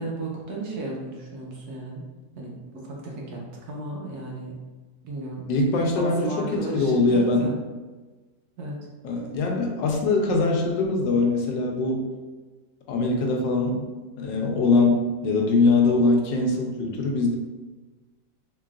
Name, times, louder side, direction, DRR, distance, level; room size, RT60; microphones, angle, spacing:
voice 1, 0.0-2.0 2.4-3.4 3.6-4.6 5.0-5.5 5.9-7.5 8.6-8.7, right 2 dB, 70° right, -3 dB, 1.1 m, -34 dB
voice 2, 5.5-7.5 9.0-12.1 12.9-13.8 14.2-15.0 15.2-17.4, left 3 dB, 80° left, 1 dB, 1.3 m, -22 dB
3.7 x 3.3 x 2.4 m, 1.3 s
omnidirectional pair, 1.9 m